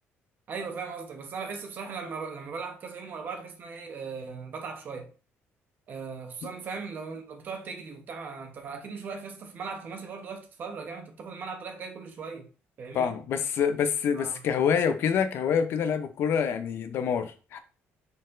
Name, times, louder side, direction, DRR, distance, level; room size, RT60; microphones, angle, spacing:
voice 1, 0.5-5.1 5.9-12.5 12.8-13.2 14.1-14.4, right 5 dB, 45° right, 0.8 m, -38 dB
voice 2, 12.9-17.6, left 7 dB, 60° left, 0.5 m, -26 dB
4.2 x 4.0 x 2.5 m
cardioid pair, 155°, 5 cm